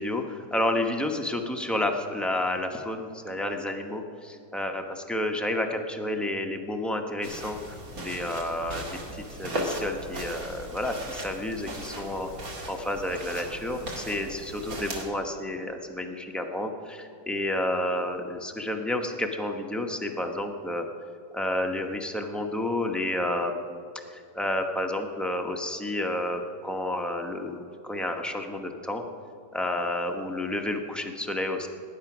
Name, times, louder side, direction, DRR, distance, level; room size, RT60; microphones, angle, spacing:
voice 1, 0.0-8.8 9.1-12.3 12.7-20.8 21.3-23.8 24.1-29.0 29.5-31.7, left 1 dB, ahead, 2 dB, 0.3 m, -30 dB
sound 1, 7.2-15.0, equal, 50° right, 2.5 m, -37 dB
18.5 x 10.0 x 6.0 m, 2.3 s
omnidirectional pair, 2.0 m